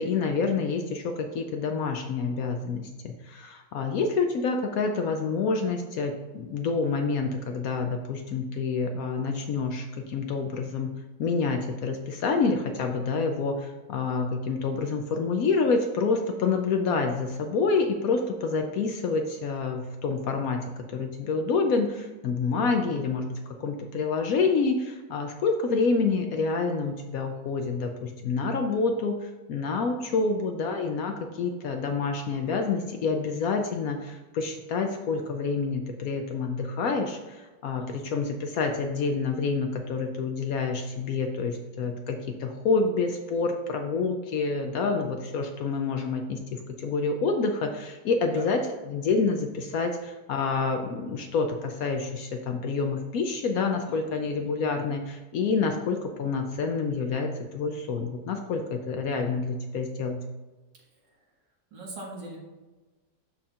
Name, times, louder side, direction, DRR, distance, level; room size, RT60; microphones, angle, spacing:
voice 1, 0.0-10.9 11.2-48.6 48.9-60.2, left 4 dB, 70° left, 5 dB, 0.9 m, -28 dB
voice 2, 30.0-30.3 37.7-38.1 44.8-45.1 48.2-48.5 53.8-54.5 59.2-59.5 61.7-62.4, right 1 dB, 85° right, -2 dB, 2.3 m, -43 dB
12.0 x 4.3 x 2.4 m, 1.2 s
omnidirectional pair, 1.9 m